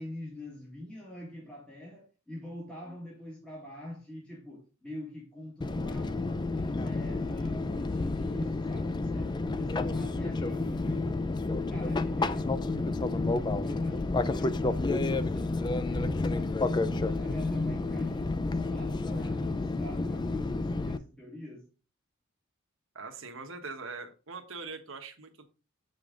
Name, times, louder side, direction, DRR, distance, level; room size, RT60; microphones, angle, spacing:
voice 1, 0.0-11.4 11.7-21.7, left 1 dB, 5° left, 1.7 m, -45 dB
Fixed-wing aircraft airplane, 5.6-21.0, left 3 dB, 20° left, 0.4 m, -30 dB
voice 2, 22.9-25.4, right 4 dB, 65° right, 1.3 m, -42 dB
7.4 x 5.3 x 3.7 m
head